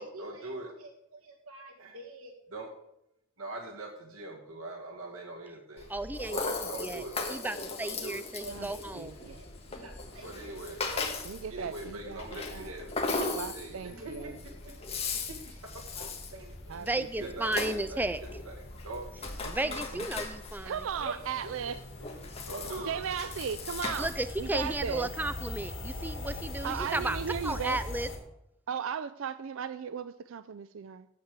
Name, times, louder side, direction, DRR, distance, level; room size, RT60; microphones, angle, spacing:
voice 1, 0.0-2.7 3.4-5.9 6.3-7.4 7.8-8.8 9.3-14.8 15.1-16.9 17.2-17.5 17.9-18.0 18.5-18.6 18.8-19.1 21.0-21.7 22.0-23.0, right 2 dB, 90° right, 2 dB, 1.7 m, -43 dB
Rattle (instrument), 5.8-24.7, left 3 dB, 30° left, 1.4 m, -38 dB
voice 2, 5.9-6.4 6.8-7.0 7.3-9.1 16.8-18.2 19.5-20.9 24.0-27.2 27.4-28.1, right 2 dB, 10° right, 12 dB, 0.4 m, -34 dB
sound 1, 8.4-28.2, left 1 dB, 70° left, 2.4 m, -44 dB
voice 3, 8.5-9.4 11.2-12.2 12.5-12.7 13.3-14.4 16.7-17.3 19.4-20.1 20.6-21.8 22.9-24.1 24.4-25.1 26.6-27.8 28.7-31.1, right 7 dB, 70° right, 13 dB, 0.4 m, -37 dB
8.5 x 7.4 x 8.1 m, 0.82 s
head